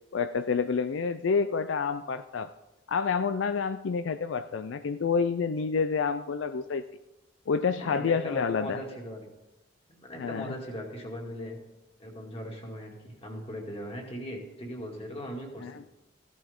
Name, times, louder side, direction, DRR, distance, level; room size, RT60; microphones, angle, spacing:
voice 1, 0.1-2.5 2.9-6.8 7.5-8.8 10.2-10.5 15.6-15.8, left 5 dB, 75° left, 11 dB, 0.4 m, -28 dB
voice 2, 7.7-9.3 9.9-11.6 12.0-15.7, equal, 30° left, 0 dB, 2.4 m, -39 dB
15.0 x 12.0 x 3.6 m, 0.95 s
head